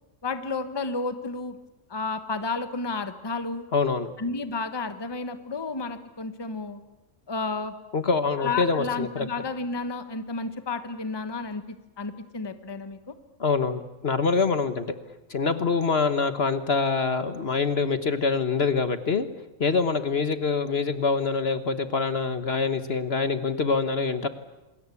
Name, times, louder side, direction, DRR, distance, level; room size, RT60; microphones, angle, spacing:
voice 1, 0.2-1.6 1.9-3.7 4.2-6.8 7.3-7.7 8.4-13.1, left 3 dB, 20° left, 10 dB, 1.2 m, -31 dB
voice 2, 3.7-4.1 7.9-9.3 13.4-14.9 15.3-19.3 19.6-24.3, left 4 dB, 50° left, 11 dB, 1.4 m, -25 dB
27.0 x 21.0 x 8.4 m, 1.0 s
omnidirectional pair, 1.4 m